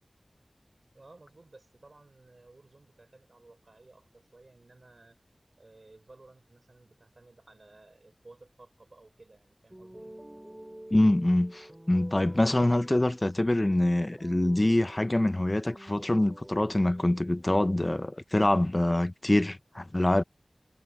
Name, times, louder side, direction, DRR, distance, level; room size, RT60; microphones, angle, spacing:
voice 1, 0.9-5.2 5.6-10.1, right 2 dB, 60° right, 6.6 m, -56 dB
sound 1, 9.7-17.9, right 1 dB, 20° right, 7.1 m, -50 dB
voice 2, 10.9-20.2, left 1 dB, 30° left, 0.9 m, -25 dB
wide cardioid pair, 55°, 0 cm